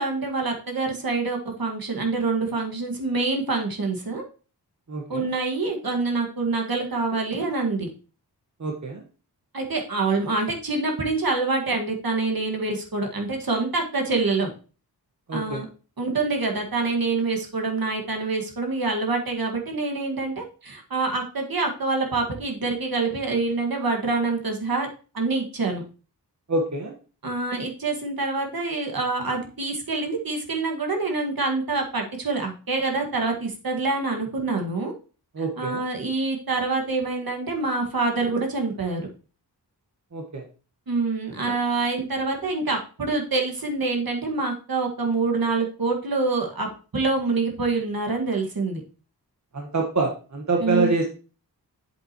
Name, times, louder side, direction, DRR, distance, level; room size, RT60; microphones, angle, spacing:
voice 1, 0.0-4.2 5.1-7.9 9.5-14.5 15.3-15.6 16.0-24.9 25.1-25.8 27.2-34.9 35.4-39.1 40.9-46.7 46.9-48.8 50.6-50.9, right 3 dB, 60° right, 2 dB, 1.8 m, -26 dB
voice 2, 4.9-5.3 8.6-9.0 15.3-15.6 26.5-26.9 35.3-35.8 40.1-40.4 49.5-51.1, right 3 dB, 45° right, 2 dB, 1.4 m, -26 dB
8.3 x 7.4 x 3.0 m, 0.36 s
cardioid pair, 55°, 40 cm